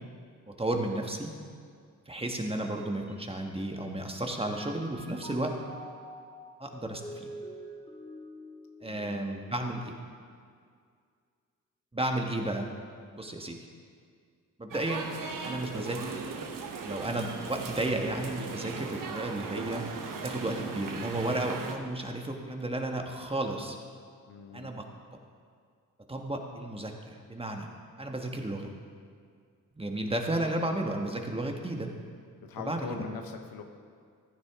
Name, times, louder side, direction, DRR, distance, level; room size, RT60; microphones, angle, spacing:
voice 1, 0.6-1.3 2.1-5.6 6.6-7.3 8.8-9.9 11.9-12.7 13.1-13.6 14.6-15.1 15.4-16.3 16.8-19.8 20.2-23.8 24.5-24.8 26.1-27.7 28.0-28.7 29.8-31.9 32.6-33.0, right 1 dB, 15° right, 2 dB, 1.5 m, -33 dB
Mallet percussion, 3.1-4.0 4.4-9.8, equal, 15° left, 1.3 m, -47 dB
voice 2, 8.9-9.4 24.3-24.7 32.4-33.6, left 5 dB, 85° left, 5 dB, 1.1 m, -42 dB
sound 1, 14.7-21.8, right 5 dB, 65° right, 1.2 m, -38 dB
15.0 x 9.8 x 3.7 m, 2.1 s
cardioid pair, 60°, 35 cm